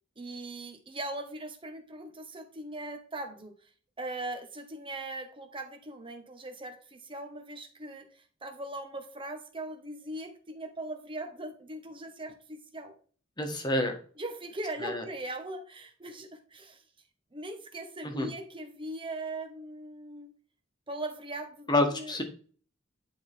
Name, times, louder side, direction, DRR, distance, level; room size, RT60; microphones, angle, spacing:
voice 1, 0.2-3.5 4.0-13.0 14.2-16.8 17.3-20.3 20.9-22.2, right 2 dB, 25° right, 5 dB, 1.4 m, -40 dB
voice 2, 13.4-14.0 14.8-15.0 18.0-18.3 21.7-22.2, left 2 dB, 20° left, 4 dB, 1.5 m, -28 dB
10.5 x 4.6 x 3.6 m, 0.43 s
head